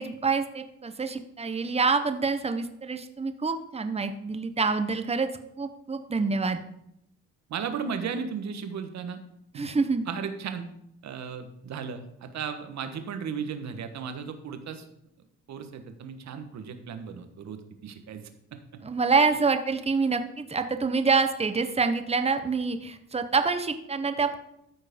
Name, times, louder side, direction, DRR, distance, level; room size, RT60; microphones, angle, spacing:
voice 1, 0.0-5.3 5.6-6.6 9.6-10.1 18.8-24.4, right 4 dB, 20° right, 8 dB, 1.0 m, -26 dB
voice 2, 7.5-9.2 9.5-9.7 10.1-10.7 11.0-14.9 15.5-18.2 18.5-18.8, right 6 dB, 65° right, 8 dB, 1.3 m, -35 dB
13.5 x 4.6 x 5.2 m, 0.78 s
cardioid pair, 90°, 30 cm